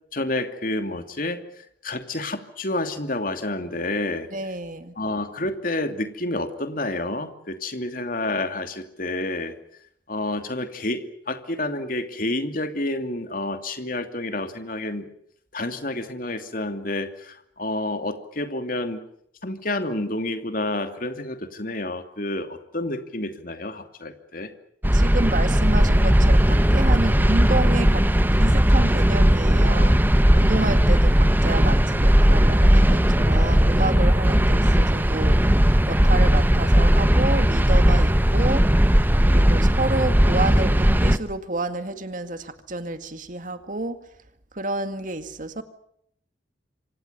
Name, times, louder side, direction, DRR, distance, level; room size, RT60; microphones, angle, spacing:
voice 1, 0.1-4.3 5.0-9.5 10.1-15.1 15.5-19.0 19.4-24.5, left 2 dB, 50° left, 7 dB, 2.7 m, -29 dB
voice 2, 4.3-4.9 24.9-28.1 28.4-30.0 30.3-35.6 35.9-38.6 39.2-44.0 44.5-45.6, right 2 dB, 45° right, 9 dB, 2.1 m, -29 dB
sound 1, 24.8-41.2, equal, 10° right, 1.0 m, -17 dB
28.0 x 25.5 x 6.8 m, 0.71 s
head